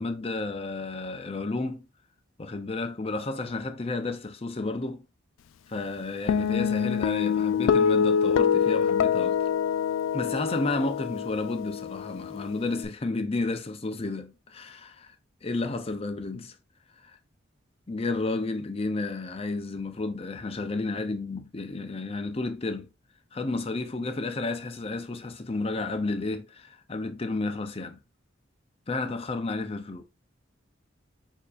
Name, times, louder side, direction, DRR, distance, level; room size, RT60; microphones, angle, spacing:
voice 1, 0.0-1.9 2.4-5.1 5.7-9.5 10.1-15.2 15.4-16.6 17.0-17.2 17.9-22.9 23.3-28.0 28.9-30.0, left 3 dB, 30° left, 0.5 m, -32 dB
Guitar, 6.3-12.8, left 7 dB, 85° left, 0.3 m, -25 dB
6.7 x 2.8 x 2.5 m
head